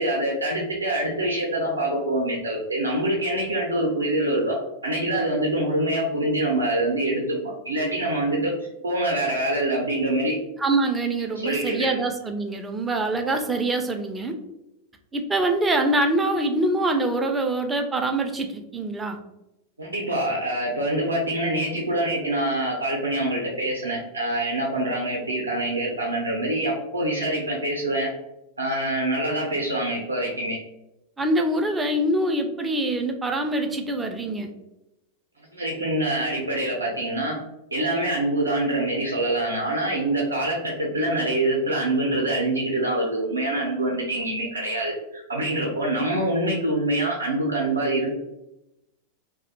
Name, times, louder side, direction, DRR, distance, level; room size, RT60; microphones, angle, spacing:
voice 1, 0.0-4.6 4.8-7.4 7.6-10.4 11.4-11.9 19.8-28.1 28.6-30.6 35.5-37.4 37.7-48.1, right 1 dB, 80° right, -2 dB, 0.5 m, -25 dB
voice 2, 10.6-14.4 15.1-19.2 31.2-34.5, right 2 dB, 15° right, 5 dB, 0.3 m, -24 dB
2.5 x 2.1 x 2.7 m, 0.90 s
figure-of-eight pair, 90°, 0 cm